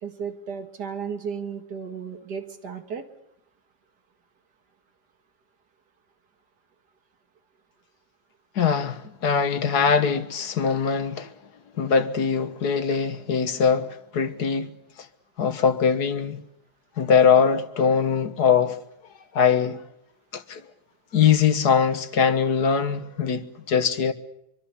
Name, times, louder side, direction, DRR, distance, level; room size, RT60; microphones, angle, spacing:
voice 1, 0.0-3.0, right 6 dB, 85° right, 2.6 m, -34 dB
voice 2, 8.6-11.3 11.8-14.7 15.0-15.1 15.4-16.4 17.0-18.8 19.3-19.8 20.3-20.6 21.1-24.1, left 6 dB, 75° left, 1.9 m, -22 dB
24.5 x 24.0 x 7.0 m
omnidirectional pair, 1.7 m